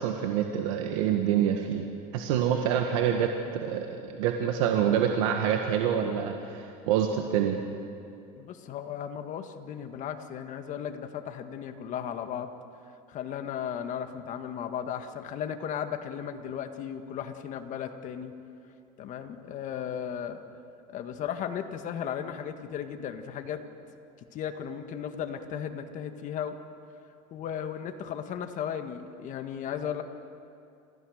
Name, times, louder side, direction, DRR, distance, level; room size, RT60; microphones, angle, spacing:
voice 1, 0.0-1.9 2.1-7.6, right 9 dB, 90° right, 3 dB, 1.6 m, -26 dB
voice 2, 8.4-12.5 13.1-18.3 19.0-20.4 20.9-23.6 24.3-26.6 27.3-30.0, left 8 dB, 50° left, 7 dB, 1.7 m, -35 dB
28.5 x 15.5 x 6.6 m, 2.7 s
supercardioid pair, 115°, 16 cm